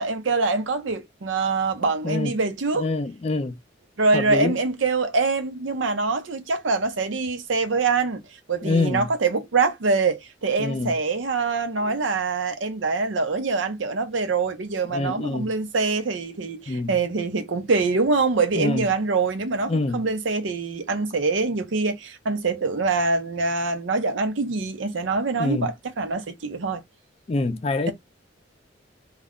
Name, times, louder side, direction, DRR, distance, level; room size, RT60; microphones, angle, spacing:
voice 1, 0.0-2.9 4.0-8.2 8.5-26.8, right 4 dB, 80° right, 0.6 m, -24 dB
voice 2, 2.7-3.6 4.1-4.6 8.6-9.1 10.6-10.9 14.9-15.5 16.7-16.9 18.5-18.9 19.7-20.0 25.4-25.7 27.3-27.9, left 2 dB, 30° left, 0.4 m, -25 dB
2.3 x 2.1 x 3.6 m
head